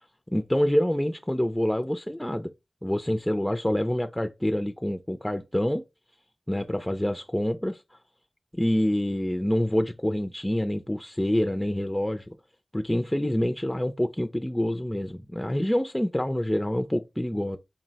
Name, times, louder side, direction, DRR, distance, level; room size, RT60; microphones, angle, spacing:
voice 1, 0.3-2.5 2.8-5.8 6.5-8.0 8.5-12.3 12.7-17.6, equal, 10° left, 0.3 m, -26 dB
3.9 x 2.0 x 3.9 m
wide cardioid pair, 70°, 0 cm